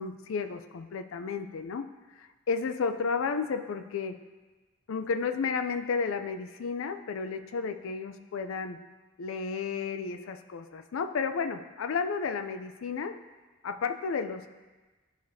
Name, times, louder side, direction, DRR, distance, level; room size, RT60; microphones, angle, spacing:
voice 1, 0.0-1.9 2.2-4.2 4.9-8.8 9.2-13.2 13.6-14.5, left 5 dB, 70° left, 8 dB, 0.4 m, -32 dB
10.0 x 5.1 x 2.7 m, 1.3 s
head